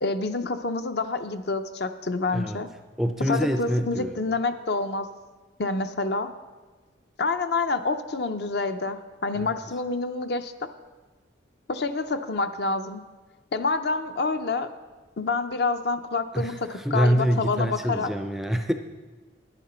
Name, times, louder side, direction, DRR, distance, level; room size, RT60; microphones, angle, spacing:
voice 1, 0.0-2.7 3.3-5.1 5.6-6.3 7.2-10.7 11.7-13.0 13.5-14.7 15.2-18.1, left 3 dB, 55° left, 9 dB, 0.6 m, -27 dB
voice 2, 3.0-4.2 9.4-9.5 16.3-18.7, equal, ahead, 6 dB, 0.4 m, -25 dB
10.5 x 10.0 x 4.3 m, 1.3 s
head